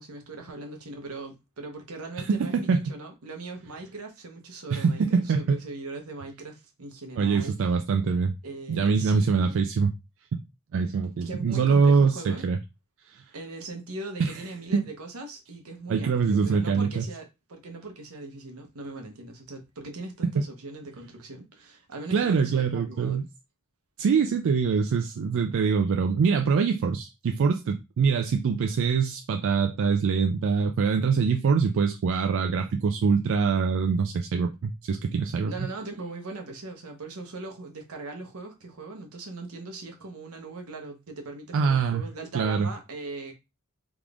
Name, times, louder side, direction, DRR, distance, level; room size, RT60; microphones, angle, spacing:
voice 1, 0.0-7.6 8.4-9.5 11.2-12.5 13.3-23.2 35.5-43.3, right 2 dB, 85° right, 0.9 m, -40 dB
voice 2, 2.3-2.8 4.7-5.6 7.2-8.3 8.7-9.9 10.3-10.4 10.7-12.6 13.1-13.2 14.2-14.4 14.7-14.8 15.9-17.0 20.2-20.4 22.1-23.2 24.0-35.7 41.5-42.0 42.3-42.7, right 5 dB, 60° right, 0.3 m, -24 dB
3.6 x 3.1 x 2.4 m
head